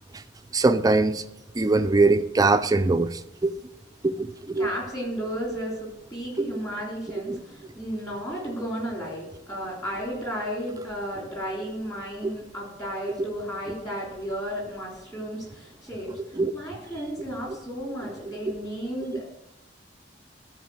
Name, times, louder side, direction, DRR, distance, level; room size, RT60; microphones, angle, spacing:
voice 1, 0.5-1.2 1.6-3.6 4.0-4.7 6.4-6.5 7.3-7.4 16.4-16.5 18.3-18.4, right 3 dB, 20° right, 11 dB, 0.4 m, -22 dB
voice 2, 4.6-19.2, equal, 20° left, -3 dB, 3.2 m, -33 dB
12.5 x 4.7 x 6.2 m, 0.91 s
head